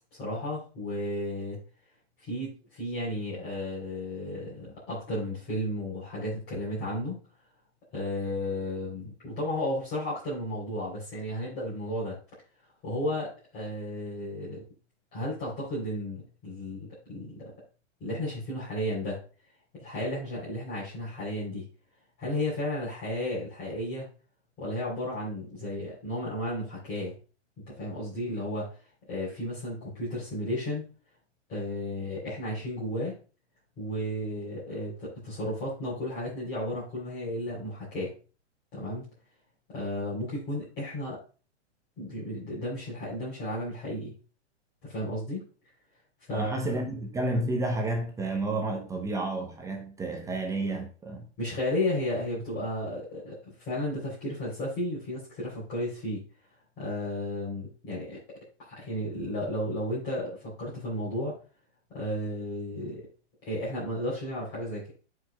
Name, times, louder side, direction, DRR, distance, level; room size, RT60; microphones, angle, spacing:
voice 1, 0.1-1.6 2.2-7.2 7.9-12.2 12.8-14.6 15.1-17.5 18.0-19.2 19.7-21.7 22.2-24.1 24.6-27.1 27.7-28.7 29.1-30.9 31.5-33.2 33.8-38.1 38.7-39.1 39.7-41.2 42.0-44.1 44.8-45.5 46.3-46.6 51.4-56.2 56.8-58.2 58.6-61.4 61.9-63.1 63.4-64.9, left 1 dB, 25° left, 3.5 m, -33 dB
voice 2, 46.3-51.3, right 2 dB, 10° right, 0.6 m, -31 dB
11.5 x 4.9 x 2.2 m
hypercardioid pair, 140°, 35 cm